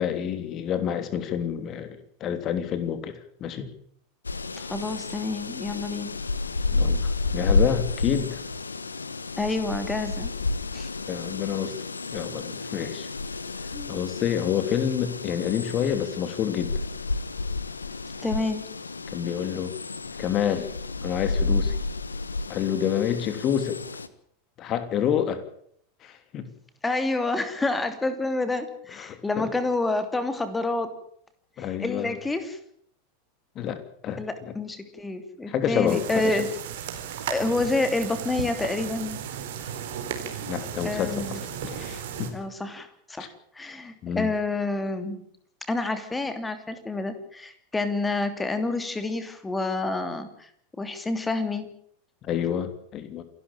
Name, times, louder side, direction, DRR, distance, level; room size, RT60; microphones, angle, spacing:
voice 1, 0.0-3.7 6.7-8.4 11.1-11.7 12.1-13.1 13.9-16.7 19.1-19.7 20.2-20.7 21.0-21.8 22.5-23.8 24.6-25.4 26.0-26.5 28.9-29.5 31.6-32.1 33.5-34.5 35.5-36.5 40.5-42.3 43.2-43.3 44.0-44.3 52.2-53.2, left 9 dB, 35° left, 10 dB, 3.1 m, -28 dB
sound 1, 4.2-24.1, left 3 dB, 80° left, 1.2 m, -30 dB
voice 2, 4.6-6.1 9.4-10.3 10.7-10.9 13.7-13.9 18.2-18.7 26.8-30.9 31.6-32.6 34.2-36.5 37.3-39.2 40.8-41.4 42.3-45.2 45.7-50.5 50.8-51.7, left 2 dB, 10° left, 10 dB, 3.0 m, -28 dB
sound 2, 35.9-42.3, right 9 dB, 60° right, 4.3 m, -35 dB
28.0 x 12.5 x 9.0 m, 0.66 s
figure-of-eight pair, 90°, 0 cm